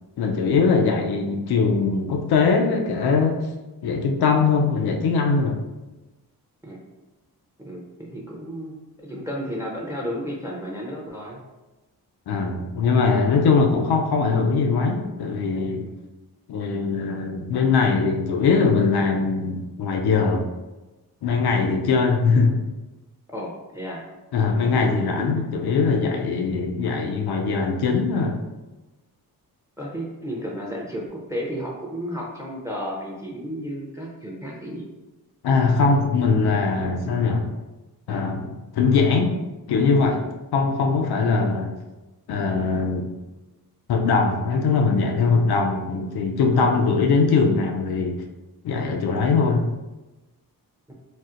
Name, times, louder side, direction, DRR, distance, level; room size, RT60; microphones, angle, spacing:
voice 1, 0.2-3.4 3.8-5.5 12.3-15.8 16.5-20.4 21.2-22.6 24.3-28.4 35.4-37.5 38.1-39.3 39.7-40.2 40.5-41.7 42.3-43.1 43.9-48.2 48.6-49.7, left 4 dB, 85° left, 3 dB, 0.5 m, -21 dB
voice 2, 7.6-11.4 15.8-16.0 23.3-24.0 24.8-25.3 29.8-34.9 46.6-46.7, equal, 10° right, -2 dB, 0.5 m, -33 dB
4.2 x 2.0 x 2.4 m, 1.1 s
cardioid pair, 85°, 37 cm